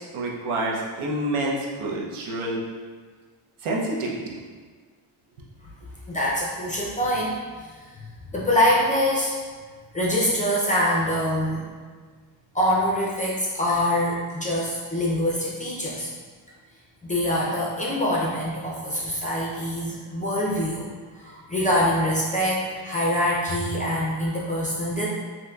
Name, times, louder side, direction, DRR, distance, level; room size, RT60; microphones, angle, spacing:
voice 1, 0.1-2.6 3.6-4.3, right 1 dB, 90° right, -3 dB, 0.7 m, -28 dB
voice 2, 6.1-7.7 8.3-9.3 9.9-11.7 12.5-16.1 17.0-20.9 21.2-25.1, left 1 dB, 20° left, -6 dB, 0.3 m, -24 dB
3.7 x 2.8 x 2.2 m, 1.5 s
wide cardioid pair, 155°, 48 cm